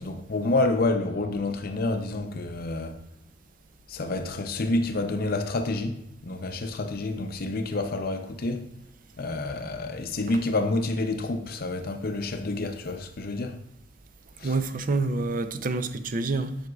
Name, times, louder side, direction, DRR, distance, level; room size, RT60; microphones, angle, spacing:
voice 1, 0.0-3.0 3.9-8.7 9.2-13.6 14.4-14.6, left 2 dB, 50° left, 0.6 m, -28 dB
voice 2, 14.4-16.6, right 3 dB, 45° right, 0.5 m, -27 dB
8.0 x 7.8 x 2.3 m
head